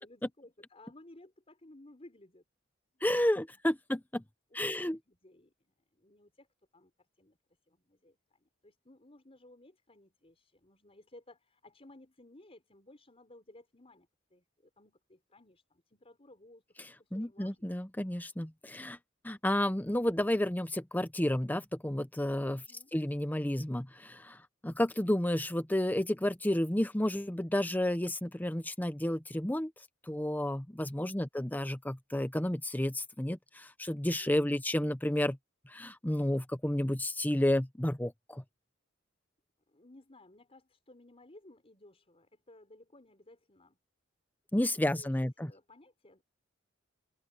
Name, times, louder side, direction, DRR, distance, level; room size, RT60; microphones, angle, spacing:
voice 1, 0.0-2.4 2.9-3.0 3.3-3.6 4.5-6.5 6.7-7.4 7.6-16.6 17.0-17.7 22.4-22.9 30.8-31.1 34.2-34.6 39.7-43.8 44.9-46.2, left 1 dB, 30° left, 4.9 m, -58 dB
voice 2, 3.0-4.2 4.5-5.0 17.1-19.0 19.2-22.6 22.9-29.7 30.1-35.4 35.7-38.4 44.5-45.5, left 1 dB, 10° left, 0.8 m, -31 dB
head